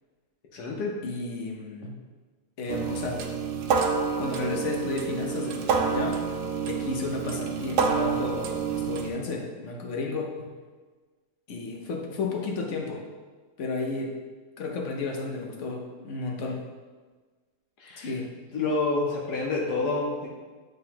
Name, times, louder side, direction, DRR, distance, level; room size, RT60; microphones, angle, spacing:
voice 1, 0.5-1.0 17.8-18.1 18.5-20.3, left 3 dB, 80° left, -3 dB, 1.4 m, -28 dB
voice 2, 1.0-2.0 2.6-3.2 4.2-6.2 6.7-10.5 11.5-13.0 13.6-14.2 14.6-16.6 18.0-18.3, left 3 dB, 55° left, 1 dB, 1.0 m, -32 dB
sound 1, 2.7-9.1, right 5 dB, 90° right, 1.2 m, -28 dB
9.1 x 3.8 x 2.9 m, 1.4 s
omnidirectional pair, 1.7 m